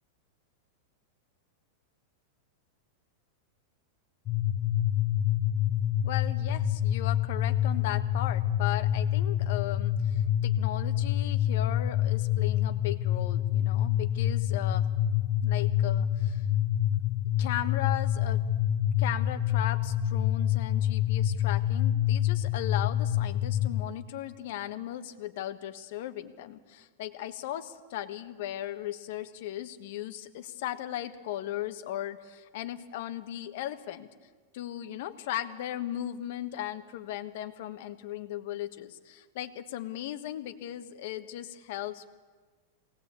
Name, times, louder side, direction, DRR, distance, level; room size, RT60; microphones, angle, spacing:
sound 1, 4.3-23.8, left 11 dB, 30° left, 0.9 m, -27 dB
voice 1, 6.0-14.9 15.4-16.4 17.4-18.4 19.0-34.1 34.5-42.1, left 12 dB, 60° left, 10 dB, 1.4 m, -37 dB
23.5 x 18.0 x 8.4 m, 1.4 s
supercardioid pair, 155°, 0 cm